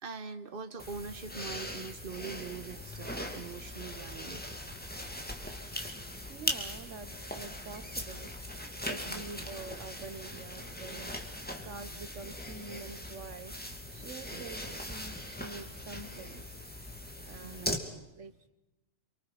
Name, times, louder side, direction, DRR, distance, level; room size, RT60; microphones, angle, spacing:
voice 1, 0.0-4.4 9.1-9.2 14.3-14.8 17.4-17.9, right 5 dB, 45° right, 9 dB, 1.5 m, -43 dB
sound 1, 0.8-17.8, left 1 dB, 5° left, 2.6 m, -40 dB
voice 2, 6.3-11.3 11.6-13.6 13.9-16.6 17.3-18.3, right 4 dB, 70° right, 11 dB, 1.4 m, -47 dB
28.0 x 24.5 x 5.8 m, 0.96 s
omnidirectional pair, 1.3 m